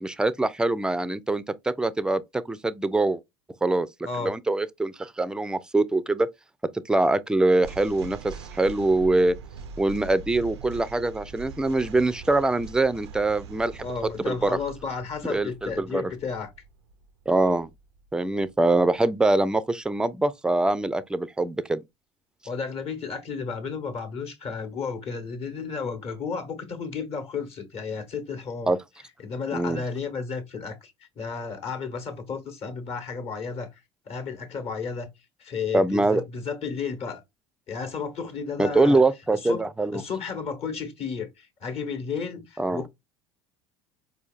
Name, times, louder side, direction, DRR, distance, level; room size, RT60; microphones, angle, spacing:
voice 1, 0.0-3.2 3.6-3.9 4.2-6.3 6.9-9.3 9.8-13.9 14.2-14.5 15.3-16.0 17.3-17.7 18.1-21.8 28.7-28.8 29.5-29.8 35.7-36.2 38.6-40.0 42.6-42.8, right 2 dB, 5° right, 0.3 m, -23 dB
sound 1, 7.6-18.9, right 6 dB, 90° right, 0.4 m, -43 dB
voice 2, 13.8-16.5 22.4-28.7 29.2-33.7 34.1-35.1 35.4-37.2 37.7-39.0 39.3-39.6 39.9-42.9, left 5 dB, 45° left, 1.0 m, -33 dB
4.3 x 2.7 x 2.4 m
hypercardioid pair, 75°, 14 cm